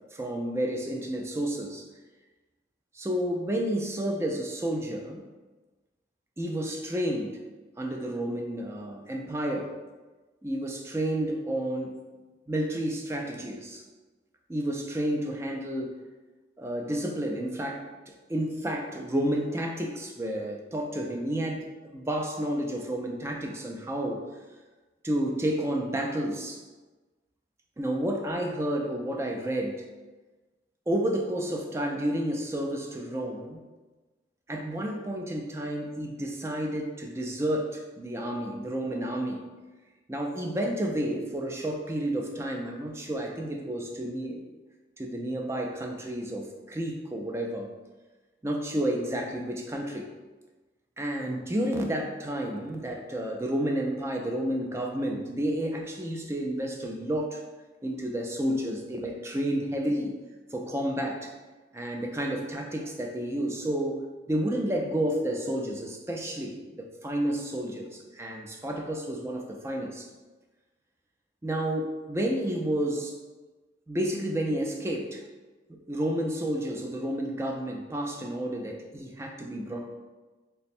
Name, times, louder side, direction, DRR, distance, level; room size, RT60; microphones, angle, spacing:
voice 1, 0.1-1.9 2.9-5.2 6.4-7.4 7.8-9.7 10.4-11.9 12.5-13.8 14.5-16.0 16.6-21.7 21.9-24.2 25.0-26.6 27.8-29.8 30.9-33.6 34.5-39.4 40.1-44.5 45.0-47.7 48.4-50.1 51.0-57.4 57.8-60.1 60.5-61.3 61.7-70.1 71.4-73.1 73.9-75.2 75.7-79.9, right 1 dB, 15° right, 1 dB, 0.3 m, -31 dB
3.2 x 2.1 x 4.2 m, 1.2 s
head